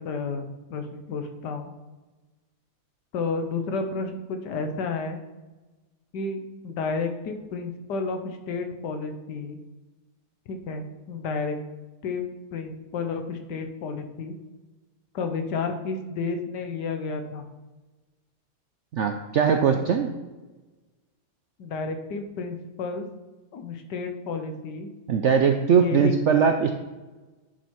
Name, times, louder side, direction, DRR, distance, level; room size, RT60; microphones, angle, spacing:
voice 1, 0.0-1.7 3.1-5.2 6.1-9.6 10.5-11.6 12.0-14.4 15.1-17.4 19.9-20.0 21.6-23.1 23.5-24.9 25.7-26.1, left 4 dB, 80° left, 6 dB, 1.5 m, -31 dB
voice 2, 18.9-20.1 25.1-26.7, right 6 dB, 75° right, 5 dB, 0.6 m, -20 dB
10.0 x 4.3 x 4.6 m, 1.2 s
omnidirectional pair, 1.8 m